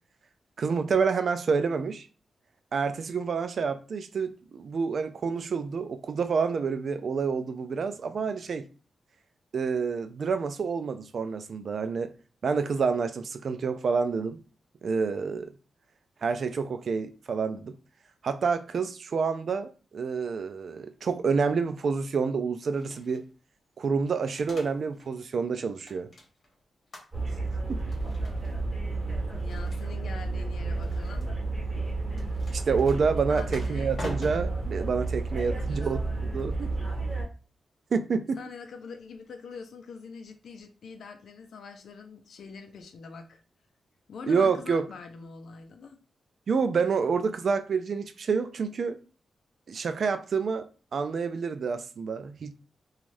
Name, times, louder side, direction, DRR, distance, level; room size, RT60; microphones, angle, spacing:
voice 1, 0.6-2.1 2.7-8.6 9.5-12.1 12.4-14.4 14.8-15.5 16.2-17.8 18.2-23.2 23.8-26.1 27.3-27.4 32.5-36.7 37.9-38.4 44.3-44.9 46.5-49.0 49.7-50.7 50.9-52.5, right 5 dB, 60° right, 0.3 m, -28 dB
sound 1, 22.7-23.3 24.0-25.2 25.4-26.5 26.9-27.4 27.8-28.6 29.3-30.2 30.7-31.3 32.1-35.8, left 1 dB, 50° left, 1.1 m, -45 dB
sound 2, 27.1-37.3, right 3 dB, 15° right, 1.6 m, -31 dB
voice 2, 29.4-31.3 33.3-34.0 35.4-37.1 38.4-43.4 44.1-46.0, left 5 dB, 80° left, 0.5 m, -44 dB
3.2 x 2.3 x 2.6 m
wide cardioid pair, 110°, 0 cm